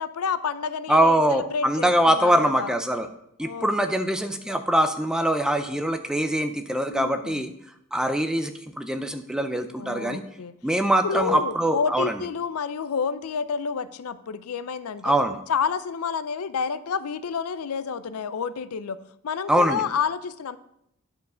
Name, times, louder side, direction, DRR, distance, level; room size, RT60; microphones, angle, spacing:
voice 1, 0.0-2.7 3.4-4.1 6.9-7.4 9.8-10.5 11.0-15.1 15.5-20.6, left 6 dB, 85° left, 14 dB, 0.5 m, -29 dB
voice 2, 0.9-3.1 3.4-7.5 7.9-10.2 10.6-12.1 15.0-15.4 19.5-19.8, right 1 dB, 5° right, 8 dB, 0.4 m, -23 dB
9.6 x 4.6 x 6.1 m, 0.78 s
head